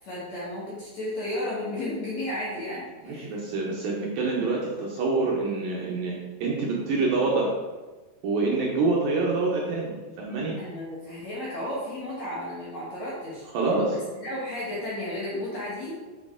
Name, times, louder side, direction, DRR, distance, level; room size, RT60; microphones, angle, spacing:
voice 1, 0.0-3.4 10.6-13.4 13.9-16.0, left 1 dB, 55° left, -7 dB, 2.1 m, -33 dB
voice 2, 3.1-7.5 8.2-10.6 13.5-14.0, right 3 dB, 70° right, -3 dB, 2.3 m, -26 dB
7.2 x 6.1 x 3.7 m, 1.3 s
omnidirectional pair, 4.9 m